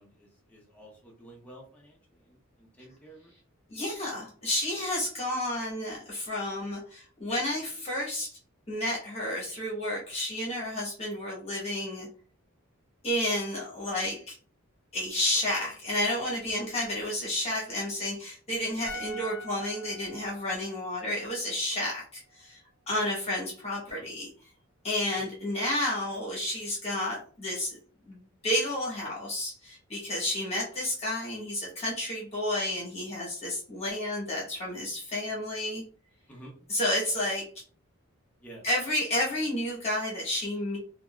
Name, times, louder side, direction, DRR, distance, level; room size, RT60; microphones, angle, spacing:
voice 1, 0.0-3.3 36.3-36.6 38.4-38.6, right 1 dB, 5° left, -2 dB, 0.6 m, -51 dB
voice 2, 3.7-8.4 8.7-12.1 13.0-14.4 14.9-22.6 22.9-24.3 24.8-27.8 28.1-35.8 36.7-37.5 38.6-40.8, left 1 dB, 30° left, -4 dB, 1.0 m, -31 dB
sound 1, 18.9-22.1 22.3-22.5, equal, 55° left, 0.7 m, -45 dB
3.8 x 2.3 x 2.2 m, 0.43 s
head